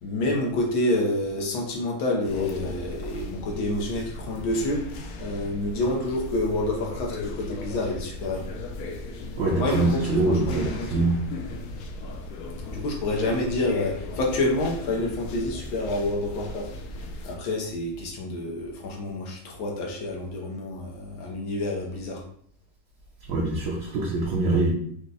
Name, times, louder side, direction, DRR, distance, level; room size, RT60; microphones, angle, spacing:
voice 1, 0.0-4.8 5.2-8.4 9.6-11.0 12.7-16.7 17.2-22.2, left 1 dB, 90° left, -1 dB, 1.7 m, -28 dB
sound 1, 2.2-17.4, left 2 dB, 70° left, 0.9 m, -37 dB
voice 2, 9.4-11.2 23.3-24.7, right 2 dB, 65° right, -4 dB, 1.3 m, -24 dB
5.1 x 2.2 x 3.9 m, 0.63 s
omnidirectional pair, 2.1 m